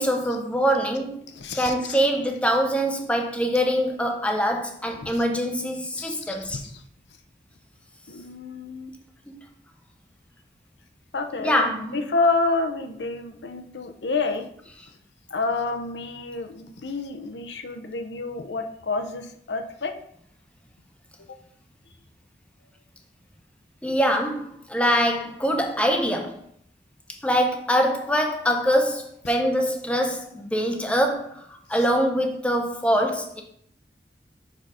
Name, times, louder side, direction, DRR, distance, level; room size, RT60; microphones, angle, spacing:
voice 1, 0.0-1.2 1.6-6.6 9.3-9.4 11.4-11.9 23.8-26.4 27.2-31.4 31.7-33.4, equal, 5° left, 0.7 m, -24 dB
voice 2, 1.3-2.1 5.0-5.2 5.9-6.8 8.1-8.9 11.1-14.5 15.3-19.9 21.3-21.4 29.2-29.4 31.7-31.9, left 3 dB, 85° left, 0.7 m, -29 dB
6.5 x 3.9 x 4.9 m
head